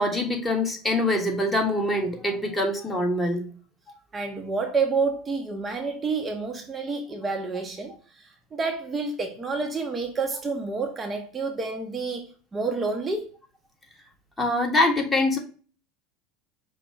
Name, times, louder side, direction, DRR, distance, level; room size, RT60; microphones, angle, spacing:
voice 1, 0.0-3.5 14.4-15.4, left 1 dB, 15° left, 1.4 m, -24 dB
voice 2, 4.1-13.3, right 4 dB, 25° right, 0.8 m, -29 dB
5.3 x 2.2 x 4.4 m
hypercardioid pair, 95°, 0 cm